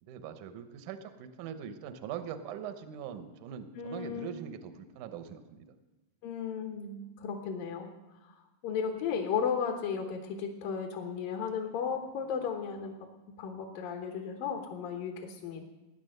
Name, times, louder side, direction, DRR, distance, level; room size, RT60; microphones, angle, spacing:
voice 1, 0.0-5.6, right 8 dB, 85° right, 9 dB, 1.7 m, -42 dB
voice 2, 3.8-4.3 6.2-7.9 8.2-8.3 8.6-13.0 13.4-15.6, left 6 dB, 65° left, 3 dB, 2.5 m, -35 dB
18.0 x 9.9 x 6.6 m, 1.1 s
omnidirectional pair, 4.9 m